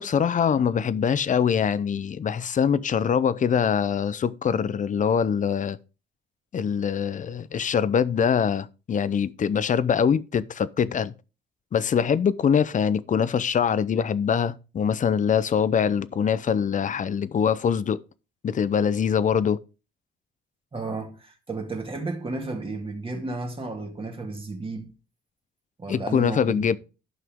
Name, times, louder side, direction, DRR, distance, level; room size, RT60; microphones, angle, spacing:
voice 1, 0.0-5.8 6.5-11.1 11.7-18.0 18.4-19.6 25.9-26.8, left 7 dB, 40° left, 0.6 m, -23 dB
voice 2, 20.7-24.9 25.8-26.8, right 3 dB, 25° right, 2.1 m, -33 dB
11.0 x 5.8 x 3.6 m
cardioid pair, 90°, 20 cm